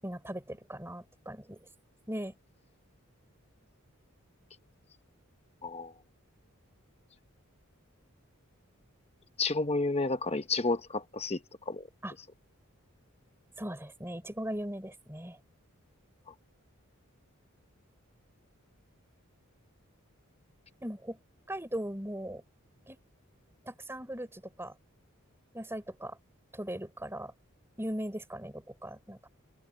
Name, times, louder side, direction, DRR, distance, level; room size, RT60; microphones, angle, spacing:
voice 1, 0.0-1.7 2.1-2.3 12.0-12.1 13.6-15.4 20.8-21.2 21.5-22.4 22.9-23.0 23.6-24.7 25.5-26.2 26.5-27.3 27.8-29.3, right 1 dB, 10° right, 6.0 m, -39 dB
voice 2, 5.6-5.9 9.4-11.4 11.7-11.8, left 3 dB, 30° left, 1.2 m, -30 dB
head